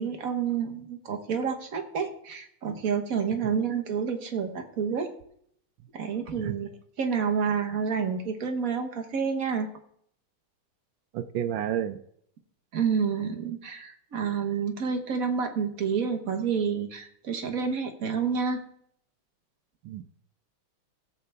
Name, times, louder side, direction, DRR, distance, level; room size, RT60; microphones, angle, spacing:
voice 1, 0.0-5.1 5.9-6.7 7.0-9.7 12.7-18.6, right 6 dB, 50° right, 5 dB, 1.4 m, -29 dB
voice 2, 11.1-12.0 19.8-20.2, right 10 dB, 80° right, 11 dB, 1.4 m, -31 dB
16.5 x 7.7 x 3.4 m, 0.69 s
omnidirectional pair, 2.2 m